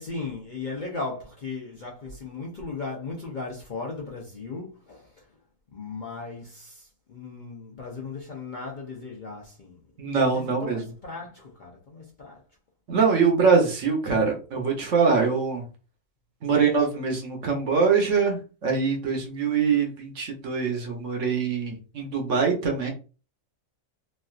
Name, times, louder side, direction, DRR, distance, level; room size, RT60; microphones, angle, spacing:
voice 1, 0.0-5.3 5.7-9.8 10.0-12.4, left 4 dB, 50° left, 0.6 m, -37 dB
voice 2, 10.0-10.8 12.9-15.6 16.4-22.9, right 5 dB, 65° right, 1.1 m, -23 dB
3.1 x 2.6 x 2.4 m
omnidirectional pair, 1.4 m